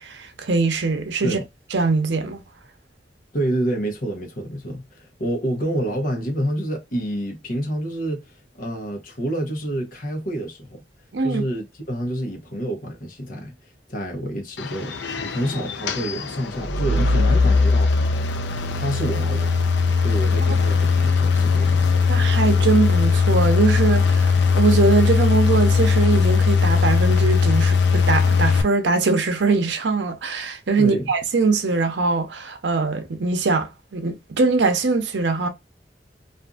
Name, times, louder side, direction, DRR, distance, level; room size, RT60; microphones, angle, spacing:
voice 1, 0.0-1.4 1.7-2.4 11.1-11.4 22.1-35.5, right 3 dB, 90° right, 0.6 m, -22 dB
voice 2, 3.3-10.8 11.2-13.5 13.9-17.9 18.7-19.5 20.0-21.9 30.8-31.1, right 1 dB, 50° left, 0.9 m, -28 dB
sound 1, 14.6-28.6, left 5 dB, 85° left, 0.5 m, -19 dB
2.5 x 2.5 x 2.3 m
head